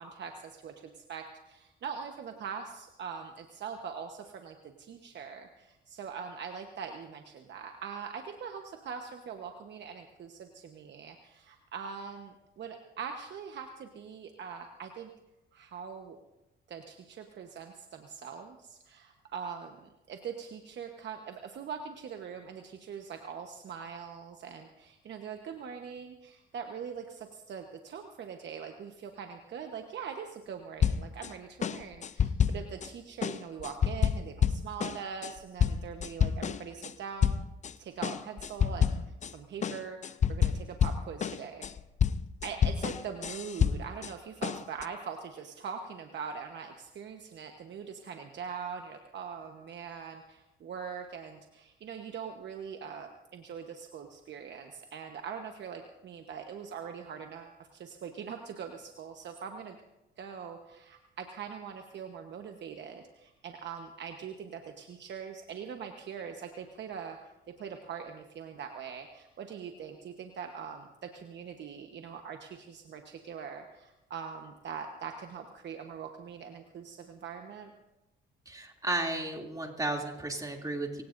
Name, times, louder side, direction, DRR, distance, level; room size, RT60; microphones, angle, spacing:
voice 1, 0.0-15.1 15.5-16.2 16.7-37.4 37.8-41.6 42.4-59.8 60.2-67.3 67.6-77.7, right 6 dB, 60° right, 4 dB, 1.2 m, -42 dB
sound 1, 30.8-31.3 31.6-32.9 33.2-36.9 37.2-37.7 38.0-39.3 39.6-44.1 44.4-44.8, left 7 dB, 35° left, 0.5 m, -29 dB
voice 2, 78.5-81.0, right 2 dB, 20° right, 1 dB, 2.8 m, -33 dB
26.5 x 17.0 x 2.7 m, 0.95 s
cardioid pair, 90°, 20 cm